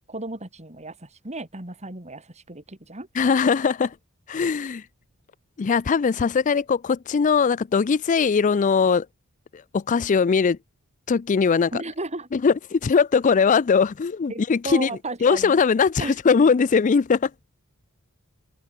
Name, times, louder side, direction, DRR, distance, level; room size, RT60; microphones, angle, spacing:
voice 1, 0.1-3.1 11.7-12.3 14.3-15.6 16.0-16.2, right 2 dB, 30° right, 3.5 m, -34 dB
voice 2, 3.2-3.9 4.3-4.8 5.6-9.1 9.7-10.6 11.1-11.8 12.3-14.9 15.2-17.3, left 5 dB, 35° left, 0.4 m, -20 dB
open air
head